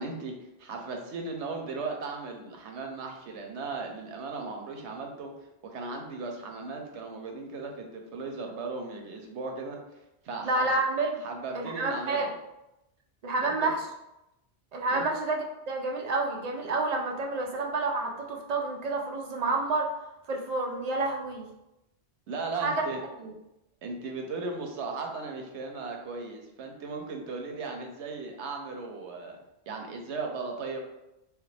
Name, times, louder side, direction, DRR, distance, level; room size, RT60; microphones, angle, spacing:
voice 1, 0.0-5.3 5.6-9.8 10.2-10.7 11.2-12.3 13.4-13.7 14.9-15.1 22.3-23.0 23.8-29.4 29.7-30.8, right 3 dB, 90° right, 3 dB, 0.9 m, -37 dB
voice 2, 10.4-11.2 11.5-12.3 13.2-13.8 14.7-19.9 20.3-21.5 22.6-22.9 23.2-23.3, right 3 dB, 55° right, 1 dB, 0.4 m, -29 dB
3.2 x 2.4 x 3.2 m, 0.90 s
omnidirectional pair, 1.1 m